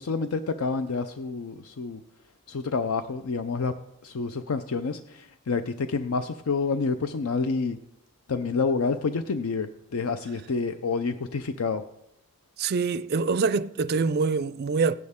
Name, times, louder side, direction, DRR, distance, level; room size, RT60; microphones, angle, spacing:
voice 1, 0.0-2.0 2.5-3.7 4.0-7.8 8.3-11.8, left 4 dB, 75° left, 0.5 m, -28 dB
voice 2, 12.6-14.9, right 4 dB, 45° right, 0.4 m, -25 dB
16.0 x 10.5 x 3.6 m
head